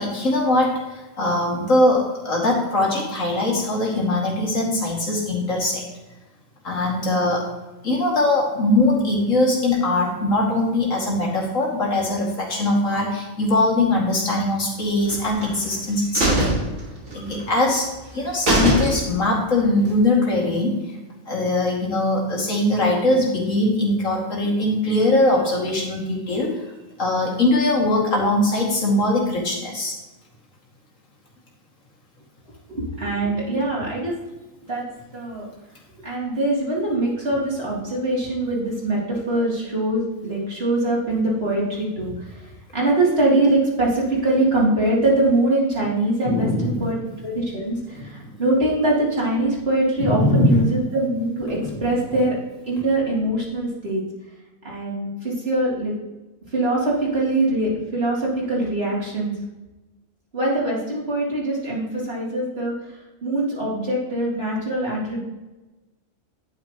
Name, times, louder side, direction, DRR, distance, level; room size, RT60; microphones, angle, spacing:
voice 1, 0.0-5.8 6.6-7.4 7.8-16.4 17.1-17.9 18.1-20.8 21.3-26.5 27.0-29.9 46.2-46.9 48.2-48.3 50.0-50.6, left 2 dB, 75° left, -2 dB, 2.7 m, -21 dB
sound 1, 15.1-15.8 16.1-17.4 17.8-17.9 18.2-18.3 18.5-19.4 19.7-19.8, right 1 dB, 85° right, 2.8 m, -22 dB
voice 2, 32.7-34.1 34.6-34.8 35.1-35.5 36.0-47.0 47.2-52.4 52.7-54.0 54.6-55.9 56.5-59.4 60.3-62.7 63.2-65.2, right 2 dB, 50° right, -5 dB, 3.2 m, -23 dB
10.5 x 9.2 x 3.0 m, 1.1 s
omnidirectional pair, 1.4 m